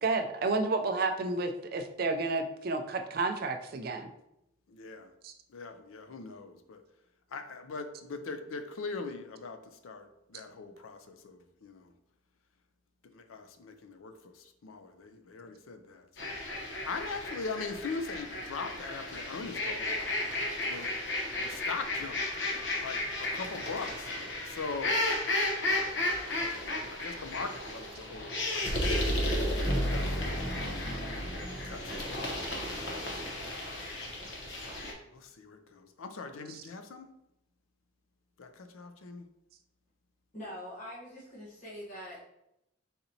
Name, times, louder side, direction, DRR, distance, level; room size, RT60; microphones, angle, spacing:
voice 1, 0.0-4.1 5.2-5.3 27.0-27.2 30.4-30.5 36.5-36.6, right 3 dB, 45° right, 6 dB, 0.4 m, -31 dB
voice 2, 4.7-5.1 5.5-6.8 7.3-9.6 9.8-11.9 13.1-16.4 16.8-19.9 20.7-20.9 21.4-22.2 22.8-24.1 24.4-25.0 26.4-29.3 29.8-31.3 31.6-32.3 35.1-37.1 38.4-39.3, left 4 dB, 80° left, 8 dB, 0.5 m, -41 dB
sound 1, 16.2-34.9, left 1 dB, 60° left, 0.8 m, -34 dB
sound 2, 29.6-33.7, equal, 10° left, 1.4 m, -37 dB
voice 3, 40.3-42.2, equal, 40° left, -8 dB, 1.1 m, -43 dB
4.2 x 4.0 x 2.7 m, 0.83 s
head